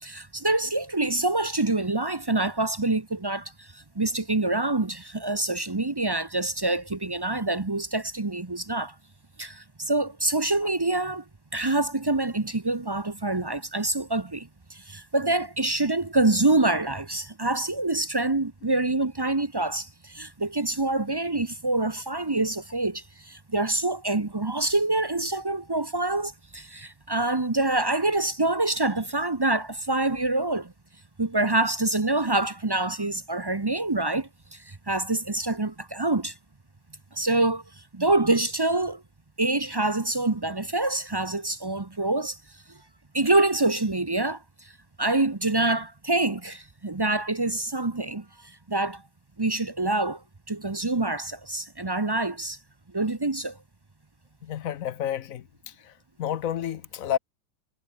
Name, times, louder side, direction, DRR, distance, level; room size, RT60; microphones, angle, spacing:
voice 1, 0.0-8.9 9.4-11.2 11.5-30.7 31.2-36.3 37.1-37.6 37.9-39.0 39.4-42.4 43.1-44.4 45.0-48.2 48.7-49.0 49.4-50.2 50.5-52.6 52.9-53.6, right 2 dB, 25° right, 0.5 m, -26 dB
voice 2, 54.4-55.9 56.2-57.2, left 10 dB, 60° left, 1.0 m, -30 dB
omnidirectional pair, 2.1 m